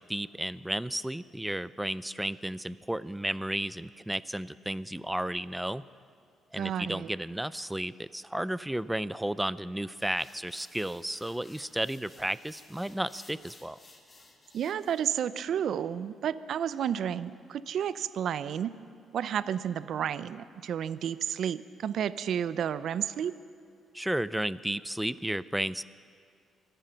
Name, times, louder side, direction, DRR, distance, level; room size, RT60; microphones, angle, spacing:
voice 1, 0.0-5.8 6.5-13.8 23.9-25.8, right 1 dB, 5° right, 17 dB, 0.4 m, -33 dB
voice 2, 6.6-7.1 14.5-18.7 19.1-23.3, right 9 dB, 65° right, 15 dB, 0.5 m, -31 dB
sound 1, 9.9-15.1, left 2 dB, 30° left, 2.0 m, -56 dB
25.5 x 9.1 x 5.7 m, 2.3 s
cardioid pair, 90°, 0 cm